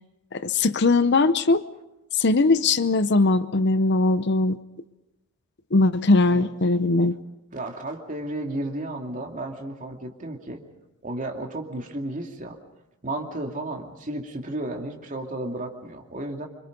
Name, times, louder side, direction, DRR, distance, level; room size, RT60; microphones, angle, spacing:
voice 1, 0.3-1.6 2.1-4.6 5.7-7.2, left 3 dB, 50° left, 14 dB, 0.7 m, -20 dB
voice 2, 7.5-10.6 11.0-12.6 13.0-16.5, right 1 dB, 35° right, 2 dB, 2.6 m, -33 dB
27.0 x 25.0 x 5.3 m, 0.92 s
head